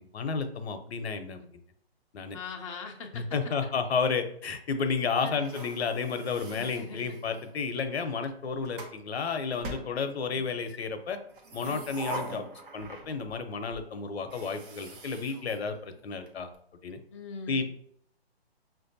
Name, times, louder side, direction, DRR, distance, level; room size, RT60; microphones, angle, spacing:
voice 1, 0.0-1.6 2.1-2.4 3.1-11.2 11.5-12.4 12.7-16.5 16.8-17.0 17.5-17.7, left 5 dB, 75° left, 8 dB, 0.7 m, -32 dB
voice 2, 2.3-3.3 5.2-5.4 6.6-7.4 17.1-17.6, left 4 dB, 30° left, 1 dB, 0.4 m, -41 dB
sound 1, 5.3-7.6 8.3-9.0 9.6-10.5 11.3-13.4 13.7-13.8 14.2-16.3, right 2 dB, 55° right, 0.9 m, -43 dB
5.8 x 2.6 x 2.6 m, 0.64 s
hypercardioid pair, 155°, 32 cm